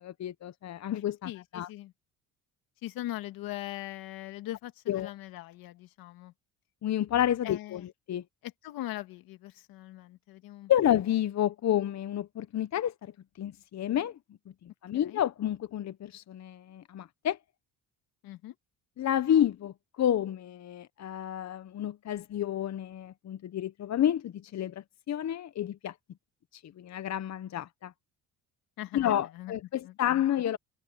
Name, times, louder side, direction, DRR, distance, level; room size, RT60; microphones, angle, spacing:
voice 1, 0.2-1.7 4.9-5.1 6.8-8.2 10.7-13.1 13.4-14.2 14.6-17.4 19.0-25.9 26.5-27.9 28.9-30.6, left 11 dB, 50° left, 0.9 m, -30 dB
voice 2, 1.2-1.9 2.8-6.3 7.4-7.9 8.4-10.7 14.9-15.2 18.2-18.5 28.8-29.5 29.8-30.2, left 15 dB, 80° left, 2.1 m, -41 dB
supercardioid pair, 75°, 35 cm